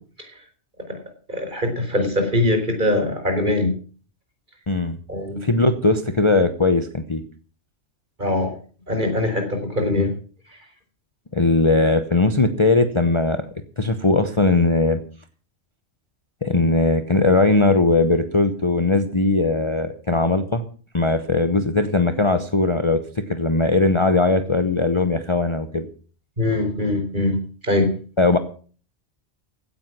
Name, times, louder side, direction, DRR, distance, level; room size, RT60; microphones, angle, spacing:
voice 1, 1.3-3.7 5.1-5.5 8.2-8.5 8.9-10.1 26.4-27.3 27.6-27.9, left 2 dB, 40° right, 5 dB, 4.3 m, -22 dB
voice 2, 4.7-5.0 5.4-7.2 11.3-13.4 13.8-15.0 16.4-20.6 20.9-25.9 28.2-28.4, left 2 dB, 25° left, 9 dB, 0.9 m, -19 dB
16.0 x 9.7 x 6.0 m, 0.41 s
omnidirectional pair, 1.3 m